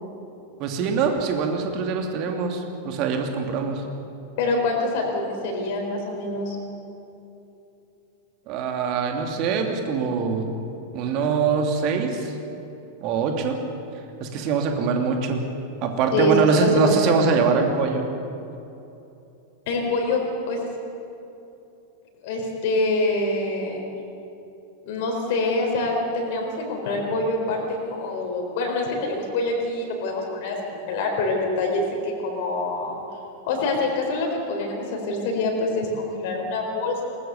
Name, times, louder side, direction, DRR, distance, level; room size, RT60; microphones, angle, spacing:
voice 1, 0.6-3.8 8.5-10.5 10.9-12.3 13.0-13.6 14.2-15.5 15.8-18.1, right 5 dB, 40° right, 4 dB, 2.7 m, -23 dB
voice 2, 4.4-6.6 16.1-17.3 19.7-20.2 20.5-20.6 22.2-23.8 24.9-33.0 33.5-37.0, left 2 dB, 50° left, 1 dB, 4.2 m, -25 dB
21.0 x 19.5 x 6.9 m, 2.9 s
figure-of-eight pair, 90°, 0 cm